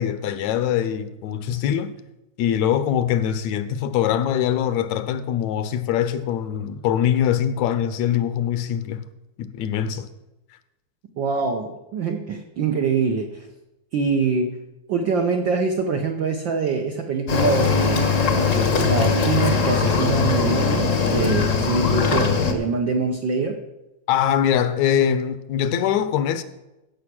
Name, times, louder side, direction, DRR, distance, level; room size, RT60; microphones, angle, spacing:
voice 1, 0.0-1.9 2.4-9.0 9.4-10.1 24.1-26.4, left 9 dB, 80° left, 1.9 m, -23 dB
voice 2, 11.2-13.5 13.9-14.6 14.9-18.1 18.7-23.6, right 4 dB, 75° right, 1.1 m, -24 dB
Cricket / Waves surf, 17.3-22.5, left 5 dB, 55° left, 0.8 m, -20 dB
16.0 x 6.7 x 6.1 m
omnidirectional pair, 3.3 m